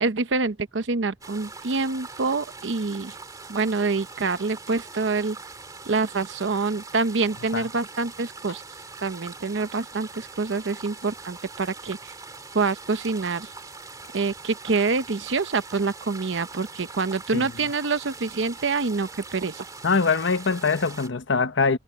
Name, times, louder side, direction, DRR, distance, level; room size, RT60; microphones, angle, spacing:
voice 1, 0.0-3.2 3.5-5.4 5.8-8.6 9.0-12.1 12.5-13.5 14.1-19.6, right 4 dB, 80° right, 0.8 m, -26 dB
sound 1, 1.2-21.1, right 4 dB, 20° right, 2.5 m, -42 dB
voice 2, 19.8-21.8, left 4 dB, 85° left, 0.9 m, -23 dB
head